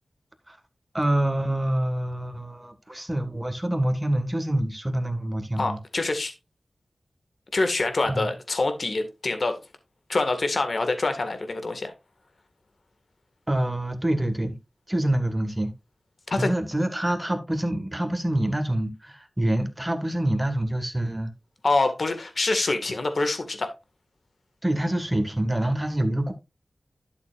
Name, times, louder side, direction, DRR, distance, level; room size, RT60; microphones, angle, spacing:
voice 1, 0.9-5.8 8.0-8.3 13.5-14.6 14.9-15.7 16.4-21.3 24.6-26.3, right 1 dB, 15° right, 1.8 m, -26 dB
voice 2, 5.6-6.3 7.5-9.6 10.1-11.9 16.3-16.5 21.6-23.7, left 3 dB, 65° left, 1.9 m, -25 dB
11.5 x 6.9 x 2.5 m
wide cardioid pair, 65°, 0 cm